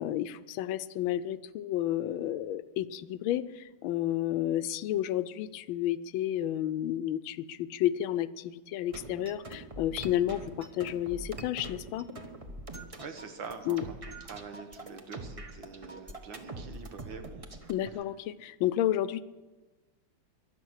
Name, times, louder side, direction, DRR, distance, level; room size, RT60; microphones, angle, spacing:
voice 1, 0.0-12.1 13.7-13.8 17.7-19.2, left 12 dB, 85° left, 14 dB, 1.4 m, -31 dB
sound 1, 8.9-17.9, right 2 dB, 25° right, 0.8 m, -43 dB
voice 2, 13.0-17.4, right 5 dB, 75° right, 6 dB, 2.1 m, -45 dB
22.0 x 7.9 x 6.4 m, 1.2 s
omnidirectional pair, 2.2 m